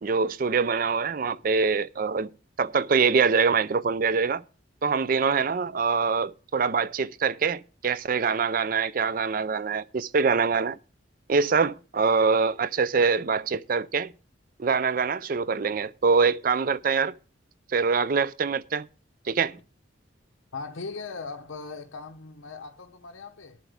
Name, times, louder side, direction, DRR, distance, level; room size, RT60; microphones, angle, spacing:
voice 1, 0.0-2.3 2.6-4.4 4.8-10.8 11.3-14.1 14.6-17.2 17.7-18.9 19.3-19.6, right 5 dB, 45° right, 0.4 m, -24 dB
voice 2, 20.5-23.6, left 4 dB, 90° left, 0.8 m, -39 dB
18.5 x 7.5 x 3.5 m
head